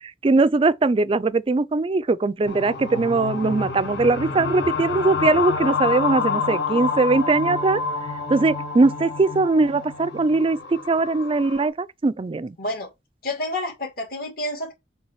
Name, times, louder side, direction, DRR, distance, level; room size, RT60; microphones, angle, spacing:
voice 1, 0.2-7.8 8.3-10.6 10.9-12.5, right 3 dB, 30° right, 0.4 m, -20 dB
sound 1, 2.5-11.7, left 5 dB, 75° left, 1.7 m, -28 dB
voice 2, 12.6-12.9 13.2-14.7, left 1 dB, 55° left, 2.6 m, -29 dB
7.1 x 3.4 x 4.7 m
head